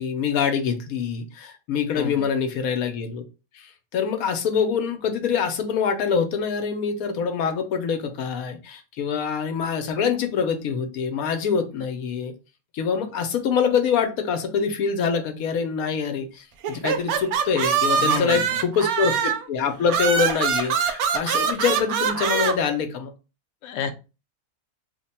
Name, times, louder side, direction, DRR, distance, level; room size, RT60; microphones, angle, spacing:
voice 1, 0.0-3.2 3.5-12.3 12.7-23.1, left 6 dB, 85° left, 6 dB, 1.1 m, -25 dB
sound 1, 16.6-19.5 19.9-22.5, right 7 dB, 85° right, 1.1 m, -23 dB
voice 2, 18.0-18.6 23.6-23.9, left 6 dB, 65° left, 6 dB, 0.8 m, -30 dB
3.2 x 2.2 x 4.1 m, 0.30 s
omnidirectional pair, 1.5 m